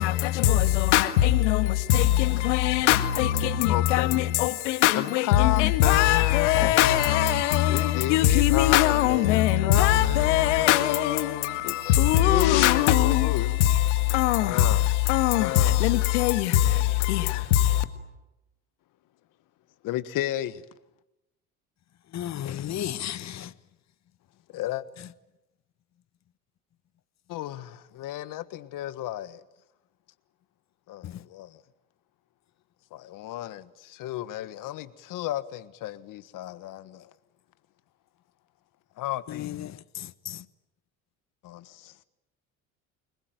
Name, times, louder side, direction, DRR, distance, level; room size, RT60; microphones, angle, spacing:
voice 1, 0.0-17.8, left 13 dB, 85° left, 1.8 m, -22 dB
voice 2, 3.4-4.3 4.9-11.8 12.1-13.5 14.4-14.8 15.4-15.8 19.8-20.6 24.5-24.8 27.3-29.4 30.9-31.6 32.9-37.1 39.0-39.5 41.4-41.9, left 14 dB, 65° left, 1.5 m, -32 dB
voice 3, 22.1-23.5 39.4-39.5, left 11 dB, 50° left, 1.2 m, -32 dB
29.0 x 21.5 x 9.2 m
hypercardioid pair, 65°, 35 cm